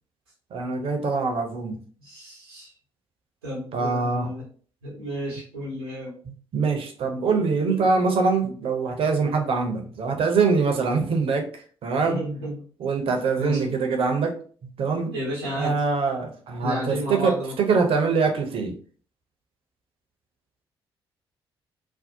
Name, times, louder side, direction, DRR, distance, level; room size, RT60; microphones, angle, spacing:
voice 1, 0.5-1.8 3.7-4.3 6.2-11.5 11.8-12.2 12.8-14.4 14.6-15.1 15.6-18.7, right 4 dB, 50° right, 3 dB, 0.6 m, -24 dB
voice 2, 2.0-2.7 3.4-4.4 4.8-6.2 7.6-7.8 12.0-12.7 13.4-13.7 15.1-15.8 16.6-17.5, equal, 85° right, -5 dB, 0.7 m, -32 dB
2.6 x 2.1 x 2.7 m, 0.44 s
figure-of-eight pair, 45°, 12 cm